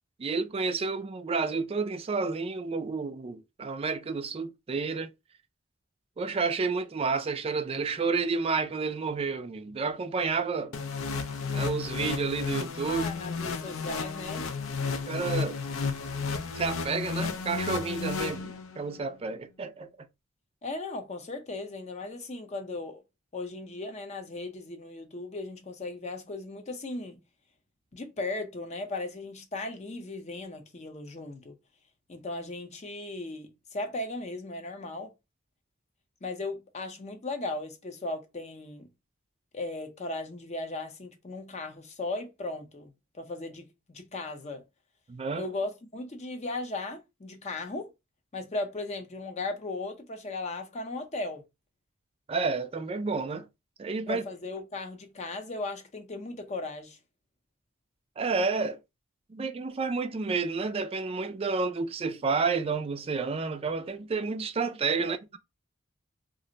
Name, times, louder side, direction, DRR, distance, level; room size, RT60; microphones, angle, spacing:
voice 1, 0.2-5.1 6.2-10.8 11.5-13.0 15.1-15.6 16.5-19.9 45.1-45.4 52.3-53.5 53.8-54.2 58.2-58.8 59.3-65.4, right 4 dB, 30° right, 0.3 m, -30 dB
sound 1, 10.7-18.9, left 5 dB, 90° left, 0.5 m, -33 dB
voice 2, 12.9-14.5 20.6-23.0 23.3-27.2 27.9-31.5 32.1-35.1 36.2-38.9 39.5-42.9 43.1-44.6 45.3-47.9 48.3-51.4 54.1-57.0 65.0-65.2, left 2 dB, 35° left, 0.6 m, -37 dB
2.5 x 2.0 x 3.8 m
head